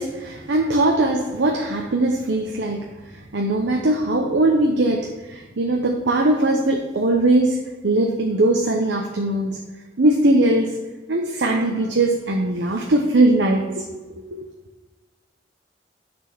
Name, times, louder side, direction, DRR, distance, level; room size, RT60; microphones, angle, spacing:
voice 1, 0.0-2.9 3.3-7.6 7.8-9.6 10.0-10.7 11.1-13.9 14.3-14.5, right 2 dB, 75° right, 2 dB, 0.8 m, -20 dB
9.3 x 4.4 x 6.0 m, 1.2 s
head